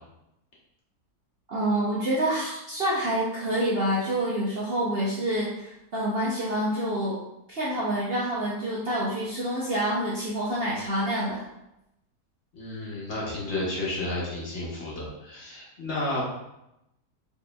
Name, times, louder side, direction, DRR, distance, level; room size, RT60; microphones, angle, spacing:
voice 1, 1.5-7.2 7.5-11.4, right 1 dB, 55° right, -7 dB, 0.7 m, -27 dB
voice 2, 12.5-16.2, left 2 dB, 50° left, -5 dB, 1.0 m, -32 dB
4.6 x 3.0 x 2.2 m, 0.87 s
omnidirectional pair, 1.7 m